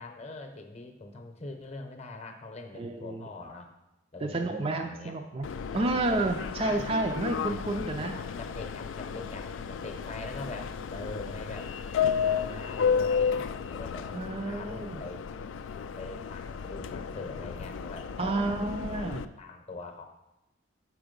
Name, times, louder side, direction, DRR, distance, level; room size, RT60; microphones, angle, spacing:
voice 1, 0.0-3.7 4.1-5.1 5.8-6.3 6.7-7.0 7.8-11.7 12.2-15.4 16.0-19.1 19.4-20.1, left 2 dB, 35° left, 5 dB, 0.8 m, -43 dB
voice 2, 2.7-3.3 4.2-5.5 5.7-8.1 14.1-15.0 18.2-19.2, right 2 dB, 30° right, 4 dB, 0.4 m, -30 dB
Subway metro underground, 5.4-19.3, left 6 dB, 75° left, 0.3 m, -33 dB
7.0 x 4.8 x 5.1 m, 0.95 s
head